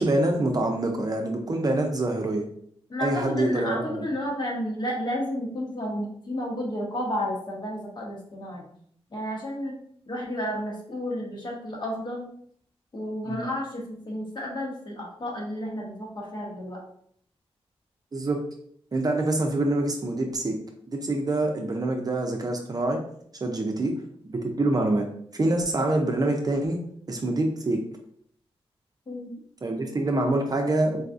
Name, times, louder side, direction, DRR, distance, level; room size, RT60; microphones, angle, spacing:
voice 1, 0.0-2.4 3.0-4.0 13.3-13.4 18.1-18.4 18.9-20.6 20.9-23.0 23.4-23.9 24.2-25.0 25.3-26.8 27.1-27.8 29.6-31.0, right 2 dB, 35° right, 3 dB, 0.6 m, -25 dB
voice 2, 2.9-8.7 9.1-9.8 10.1-12.3 12.9-16.8 29.1-29.3, equal, 45° left, -2 dB, 1.2 m, -32 dB
4.0 x 2.3 x 2.6 m, 0.64 s
wide cardioid pair, 85°, 11 cm